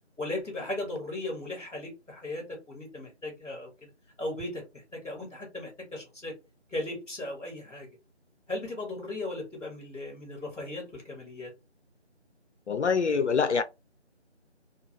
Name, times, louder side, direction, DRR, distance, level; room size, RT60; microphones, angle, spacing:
voice 1, 0.2-3.9 4.2-6.3 6.7-7.9 8.5-11.5, left 2 dB, ahead, 1.4 m, -37 dB
voice 2, 12.7-13.6, left 5 dB, 75° left, 0.5 m, -25 dB
2.7 x 2.3 x 3.1 m
figure-of-eight pair, 170°, 35 cm